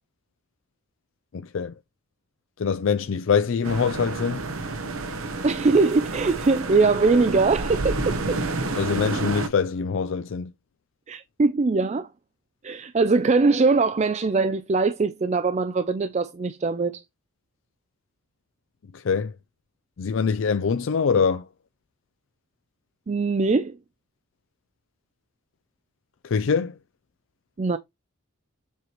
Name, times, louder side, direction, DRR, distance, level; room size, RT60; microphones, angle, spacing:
voice 1, 1.3-1.7 2.6-4.4 8.7-10.5 18.9-19.3 20.0-21.5 26.2-26.7, left 6 dB, 60° left, 0.4 m, -24 dB
sound 1, 3.6-9.5, right 2 dB, 80° right, 1.0 m, -29 dB
voice 2, 5.4-8.4 11.1-12.1 12.6-17.0 23.1-23.8 27.6-27.8, right 3 dB, 30° right, 0.4 m, -22 dB
7.3 x 3.1 x 4.5 m
head